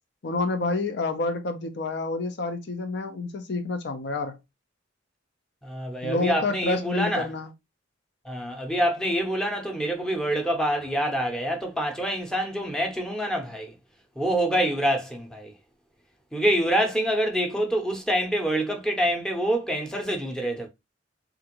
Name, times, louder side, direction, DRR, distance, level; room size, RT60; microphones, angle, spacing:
voice 1, 0.2-4.4 6.0-7.5, left 3 dB, 60° left, 0.5 m, -28 dB
voice 2, 5.6-7.3 8.2-13.7 14.2-15.5 16.3-20.7, equal, 5° left, 0.7 m, -26 dB
3.5 x 2.5 x 2.9 m
head